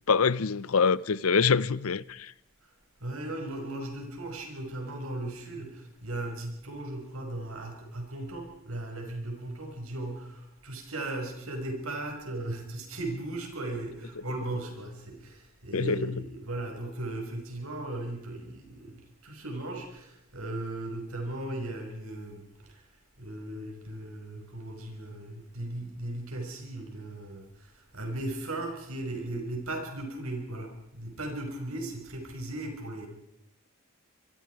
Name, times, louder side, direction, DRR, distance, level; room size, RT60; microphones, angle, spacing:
voice 1, 0.1-2.3 15.7-16.2, left 5 dB, 75° left, 0.7 m, -25 dB
voice 2, 3.0-22.9 23.2-33.1, right 1 dB, 80° right, 5.8 m, -37 dB
25.5 x 23.0 x 4.8 m
head